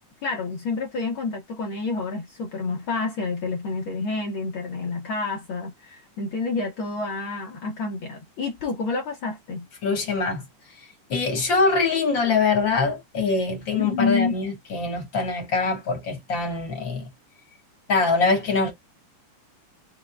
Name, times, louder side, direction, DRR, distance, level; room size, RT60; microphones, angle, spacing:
voice 1, 0.2-9.6 13.8-14.3, left 4 dB, 75° left, 1.1 m, -28 dB
voice 2, 9.8-10.4 10.8-17.1 17.9-18.7, left 4 dB, 45° left, 1.8 m, -23 dB
5.0 x 3.6 x 2.3 m
omnidirectional pair, 3.7 m